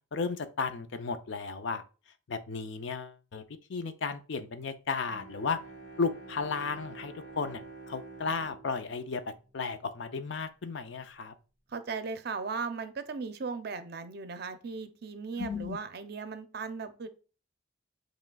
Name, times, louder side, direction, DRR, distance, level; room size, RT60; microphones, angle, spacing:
voice 1, 0.1-1.8 2.3-3.4 3.7-5.6 6.0-7.6 7.9-11.3 15.4-15.8, left 4 dB, 65° left, 0.5 m, -34 dB
Bowed string instrument, 5.0-10.1, right 3 dB, 85° left, 1.9 m, -48 dB
voice 2, 11.7-17.1, right 4 dB, 50° right, 0.5 m, -37 dB
7.3 x 3.1 x 2.3 m
head